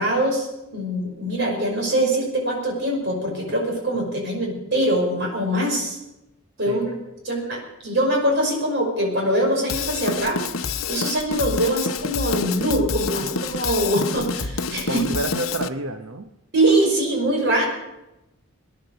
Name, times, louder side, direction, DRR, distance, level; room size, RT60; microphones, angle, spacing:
voice 1, 0.0-6.0 6.6-6.9 7.2-15.1 16.5-17.6, right 1 dB, 55° right, 0 dB, 5.5 m, -23 dB
Drum kit / Drum, 9.7-15.7, left 5 dB, 85° left, 0.8 m, -28 dB
voice 2, 14.9-16.3, right 2 dB, 75° right, 6 dB, 0.9 m, -29 dB
19.0 x 10.5 x 6.8 m, 0.91 s
head